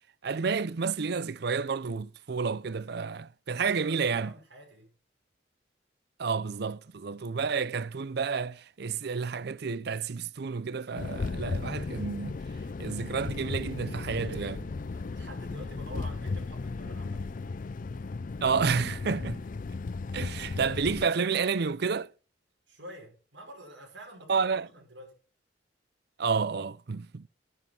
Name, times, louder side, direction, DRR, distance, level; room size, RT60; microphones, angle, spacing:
voice 1, 0.2-4.3 6.2-12.4 12.8-14.7 18.4-19.4 20.1-22.1 24.3-24.7 26.2-27.3, right 5 dB, 60° right, 0.6 m, -30 dB
voice 2, 3.7-4.9 14.9-17.2 22.7-25.2, right 1 dB, 85° right, 5.8 m, -48 dB
sound 1, 10.9-21.1, left 3 dB, 45° left, 0.4 m, -35 dB
11.0 x 11.0 x 4.4 m
head